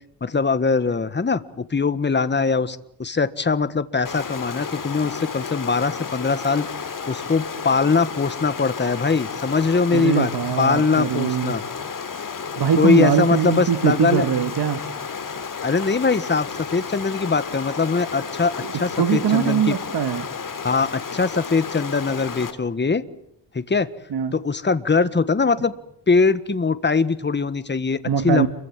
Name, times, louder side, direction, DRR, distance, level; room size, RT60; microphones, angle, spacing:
voice 1, 0.2-1.4 1.7-6.7 7.1-10.3 10.6-11.6 12.8-14.2 15.6-18.5 18.8-19.8 20.6-23.0 23.5-23.9 24.3-25.7 26.1-28.5, left 4 dB, 25° left, 14 dB, 1.6 m, -21 dB
Stream, 4.0-22.5, left 5 dB, 50° left, 3.4 m, -32 dB
voice 2, 9.9-11.5 12.6-14.8 18.6-20.3 24.1-24.3 28.1-28.5, right 8 dB, 65° right, 11 dB, 1.9 m, -22 dB
28.5 x 24.0 x 7.5 m, 0.74 s
cardioid pair, 105°, 42 cm